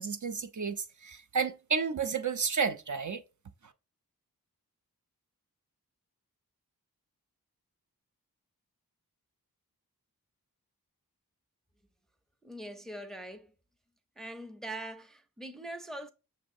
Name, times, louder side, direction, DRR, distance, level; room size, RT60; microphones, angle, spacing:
voice 1, 0.0-3.2, right 5 dB, 55° right, 0.5 m, -31 dB
voice 2, 12.4-13.5 14.2-16.1, right 1 dB, ahead, 0.5 m, -42 dB
6.2 x 2.7 x 2.6 m
wide cardioid pair, 60°, 36 cm